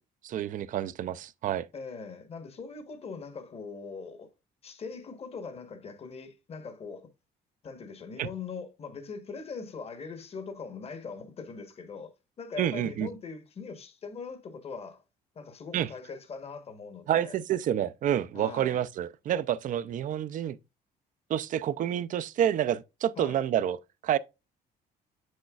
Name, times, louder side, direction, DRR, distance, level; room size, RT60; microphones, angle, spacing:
voice 1, 0.2-1.7 8.2-8.3 12.6-13.1 15.7-15.9 17.1-20.6 21.3-24.2, right 10 dB, 50° right, 0.5 m, -28 dB
voice 2, 1.7-4.3 4.6-7.1 7.6-15.0 15.3-17.3 18.3-18.8 23.2-23.4, left 5 dB, 35° left, 1.2 m, -41 dB
7.6 x 6.3 x 2.3 m
cardioid pair, 110°, 17 cm